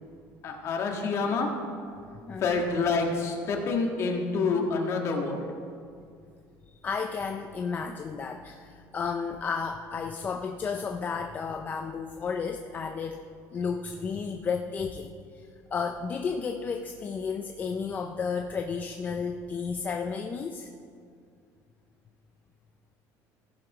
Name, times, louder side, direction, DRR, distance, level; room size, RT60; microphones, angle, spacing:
voice 1, 0.4-1.5 2.4-5.5, left 4 dB, 40° left, 1 dB, 1.6 m, -27 dB
voice 2, 2.3-2.6 6.8-13.2 13.5-15.1 15.7-20.7, left 5 dB, 25° left, 5 dB, 0.5 m, -32 dB
16.0 x 6.8 x 4.9 m, 2.3 s
cardioid pair, 155°, 7 cm